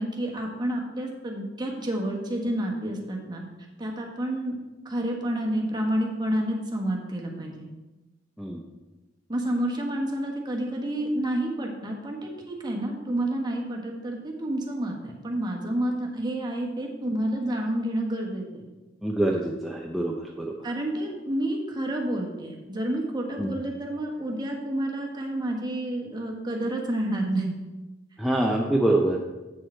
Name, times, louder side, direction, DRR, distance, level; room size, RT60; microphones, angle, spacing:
voice 1, 0.0-3.4 3.8-4.6 4.8-7.7 9.3-18.6 20.6-27.6, right 1 dB, 25° right, 0 dB, 1.3 m, -29 dB
voice 2, 19.0-20.6 23.4-23.5 28.2-29.2, right 1 dB, ahead, -2 dB, 0.5 m, -25 dB
7.7 x 6.6 x 4.3 m, 1.1 s
head